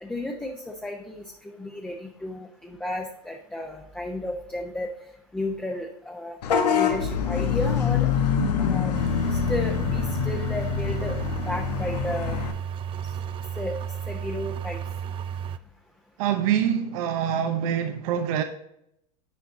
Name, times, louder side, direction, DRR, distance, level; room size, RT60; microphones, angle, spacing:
voice 1, 0.0-4.9 5.3-6.4 6.7-8.1 8.6-8.9 9.3-11.2 11.4-12.4 13.6-13.8 14.1-14.8, left 1 dB, 5° left, 0.8 m, -33 dB
Vehicle horn car horn honking / Bus, 6.4-12.5, left 7 dB, 90° left, 1.1 m, -25 dB
sound 1, 8.9-15.6, right 8 dB, 25° right, 0.4 m, -33 dB
voice 2, 16.2-18.4, right 9 dB, 65° right, 0.8 m, -25 dB
10.0 x 4.5 x 2.7 m
hypercardioid pair, 115°, 20 cm